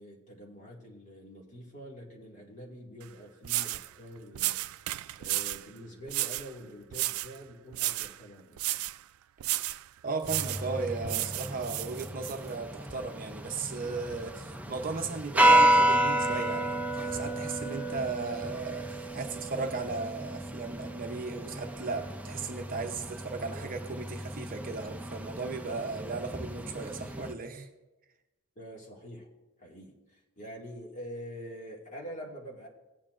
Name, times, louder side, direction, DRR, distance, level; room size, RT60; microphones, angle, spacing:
voice 1, 0.0-4.6 5.2-8.8 28.6-29.3 29.6-32.7, equal, 35° left, -2 dB, 2.0 m, -45 dB
sound 1, 3.0-3.1 3.4-3.9 4.4-5.7 6.1-6.5 6.9-7.4 7.7-8.2 8.6-9.0 9.4-9.8 10.2-10.7 11.1-12.4, right 17 dB, 75° right, 0.3 m, -32 dB
voice 2, 10.0-27.7, right 4 dB, 40° right, 4 dB, 0.7 m, -36 dB
sound 2, 10.3-27.3, right 1 dB, 5° right, 0.5 m, -31 dB
17.5 x 8.7 x 2.5 m, 1.1 s
head